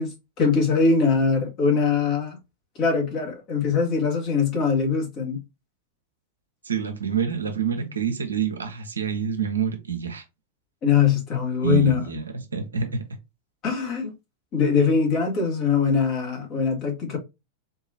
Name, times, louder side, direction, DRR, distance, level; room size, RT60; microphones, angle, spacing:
voice 1, 0.0-2.4 2.7-5.4 10.8-12.1 13.6-14.1 14.5-17.2, left 5 dB, 35° left, 1.7 m, -22 dB
voice 2, 6.6-10.2 11.6-13.0, right 7 dB, 75° right, 0.8 m, -27 dB
3.9 x 2.8 x 2.7 m
figure-of-eight pair, 90°, 0 cm